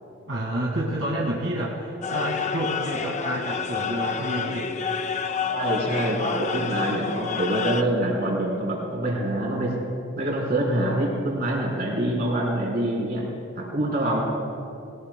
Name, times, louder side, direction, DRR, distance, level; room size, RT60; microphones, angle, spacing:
voice 1, 0.3-4.7, right 1 dB, 80° right, -3 dB, 2.0 m, -29 dB
sound 1, 2.0-7.8, left 5 dB, 35° left, 0.6 m, -29 dB
voice 2, 5.5-9.7 10.2-13.2 13.6-14.2, right 1 dB, 50° right, -4 dB, 4.1 m, -25 dB
21.5 x 19.0 x 2.3 m, 2.7 s
head